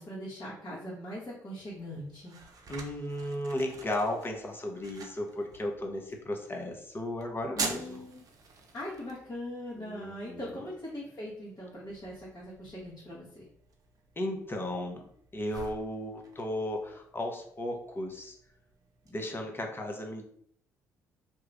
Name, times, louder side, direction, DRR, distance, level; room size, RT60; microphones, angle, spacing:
voice 1, 0.0-2.4 7.5-8.2 8.7-13.5, equal, 40° left, -8 dB, 1.4 m, -41 dB
sound 1, 1.6-19.1, right 4 dB, 45° right, 0.7 m, -46 dB
voice 2, 2.7-8.0 9.8-10.5 14.2-15.0 15.3-18.4 19.1-20.2, left 1 dB, 25° left, 2 dB, 0.9 m, -35 dB
3.0 x 2.4 x 3.3 m, 0.68 s
hypercardioid pair, 50°, 8 cm